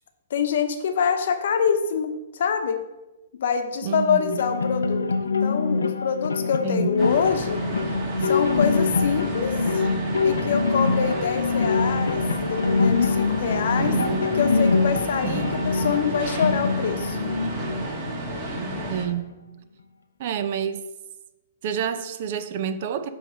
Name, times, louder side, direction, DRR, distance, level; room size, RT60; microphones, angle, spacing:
voice 1, 0.3-2.8 3.4-7.6 8.2-9.6 10.2-12.2 12.5-17.2, left 7 dB, 65° left, 7 dB, 0.9 m, -25 dB
voice 2, 3.8-4.4 6.6-6.9 18.9-19.3 20.2-20.8 21.6-23.1, right 8 dB, 50° right, 11 dB, 0.5 m, -28 dB
sound 1, 4.2-19.1, left 4 dB, 85° left, 0.5 m, -25 dB
sound 2, 7.0-19.0, right 3 dB, 30° right, 1.9 m, -32 dB
7.8 x 3.2 x 6.2 m, 1.0 s
hypercardioid pair, 125°, 0 cm